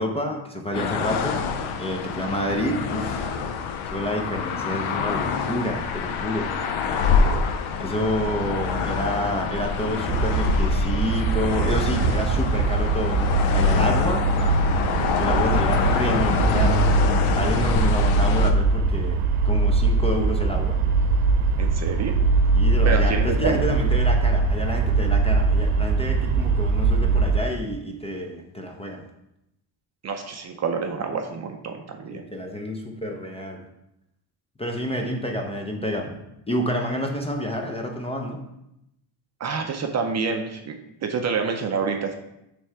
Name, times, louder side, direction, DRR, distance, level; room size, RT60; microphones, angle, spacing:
voice 1, 0.0-1.4 1.8-3.3 3.8-6.5 7.8-14.6 15.2-16.9 17.3-19.2 19.4-20.8 22.5-29.0 32.1-33.6 34.6-38.4, equal, 15° left, 2 dB, 0.5 m, -29 dB
sound 1, 0.7-18.5, left 5 dB, 75° left, 0.7 m, -26 dB
sound 2, 10.1-27.4, right 3 dB, 85° right, 0.8 m, -22 dB
voice 2, 21.6-22.2 22.8-23.7 30.0-32.2 39.4-42.1, right 5 dB, 35° right, 4 dB, 0.5 m, -28 dB
6.2 x 3.4 x 4.5 m, 0.85 s
cardioid pair, 125°, 49 cm